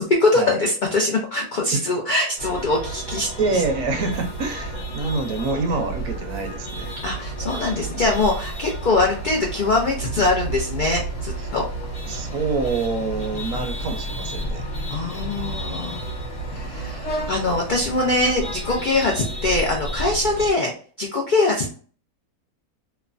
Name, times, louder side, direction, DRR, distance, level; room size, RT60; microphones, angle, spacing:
voice 1, 0.0-3.6 7.0-11.7 14.9-16.0 16.5-20.7 21.0-21.8, left 2 dB, 85° left, 0 dB, 0.4 m, -22 dB
sound 1, 2.4-20.5, right 2 dB, 50° left, 1.2 m, -31 dB
voice 2, 3.4-6.9 11.4-11.5 12.1-14.6, right 3 dB, 70° right, 5 dB, 0.9 m, -26 dB
3.1 x 2.1 x 2.4 m, 0.43 s
omnidirectional pair, 1.5 m